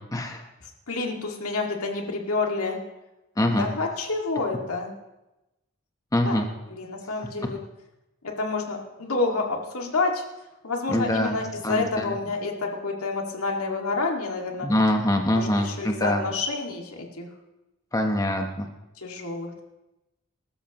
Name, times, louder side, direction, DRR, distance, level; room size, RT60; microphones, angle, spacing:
voice 1, 0.1-0.4 3.4-3.7 6.1-6.5 10.9-12.2 14.6-16.2 17.9-18.7, left 1 dB, 15° left, 3 dB, 1.0 m, -24 dB
voice 2, 0.9-2.8 3.6-4.9 6.3-6.4 6.7-7.6 8.2-10.2 10.6-14.7 15.3-17.3 19.0-19.5, left 3 dB, 85° left, 1 dB, 2.0 m, -28 dB
21.0 x 13.0 x 3.0 m, 0.97 s
head